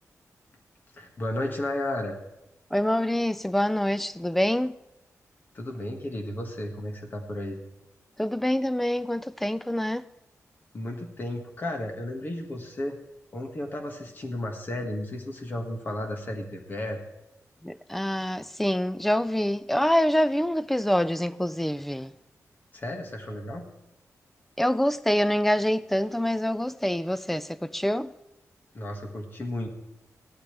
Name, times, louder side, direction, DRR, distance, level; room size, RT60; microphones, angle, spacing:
voice 1, 1.0-2.2 5.5-7.6 10.7-13.0 13.3-17.0 22.7-23.7 28.7-29.7, left 1 dB, 35° left, 1.8 m, -33 dB
voice 2, 2.7-4.7 8.2-10.0 17.6-22.1 24.6-28.1, left 1 dB, 5° left, 0.3 m, -26 dB
16.5 x 12.0 x 3.4 m
wide cardioid pair, 170°, 6 cm